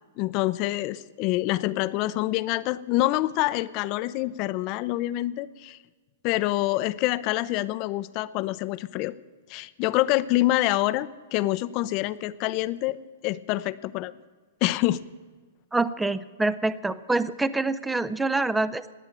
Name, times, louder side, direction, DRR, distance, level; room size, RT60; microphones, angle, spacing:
voice 1, 0.2-5.8 6.2-9.1 9.5-13.0 13.2-14.1 14.6-15.0, left 17 dB, 40° left, 16 dB, 0.6 m, -26 dB
voice 2, 15.7-18.9, right 2 dB, 5° right, 17 dB, 0.6 m, -26 dB
20.0 x 8.1 x 8.9 m, 1.4 s
hypercardioid pair, 140°, 0 cm